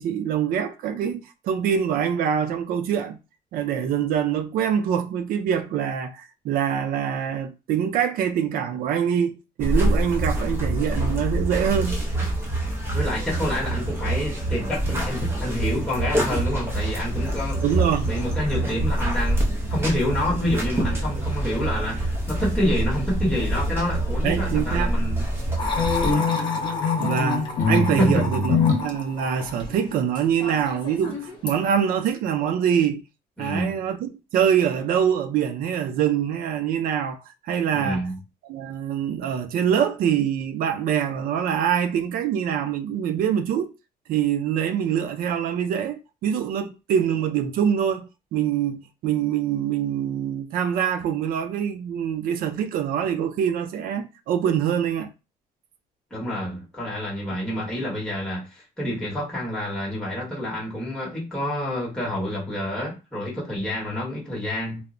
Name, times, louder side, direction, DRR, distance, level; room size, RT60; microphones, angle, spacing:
voice 1, 0.0-3.2 3.5-12.0 17.6-18.1 24.2-24.9 27.0-28.6 28.8-33.0 33.4-37.2 37.4-38.0 38.5-43.7 44.1-55.1, right 8 dB, 60° right, 0.4 m, -24 dB
sound 1, 9.6-26.1, right 1 dB, 15° right, 0.7 m, -26 dB
voice 2, 12.9-25.3 28.0-28.2 33.4-33.8 37.7-38.2 56.1-64.8, equal, 5° left, 1.0 m, -28 dB
sound 2, 25.6-31.6, left 4 dB, 30° left, 0.6 m, -32 dB
sound 3, 25.8-28.9, left 4 dB, 55° left, 0.8 m, -23 dB
2.1 x 2.0 x 3.6 m
cardioid pair, 145°, 16 cm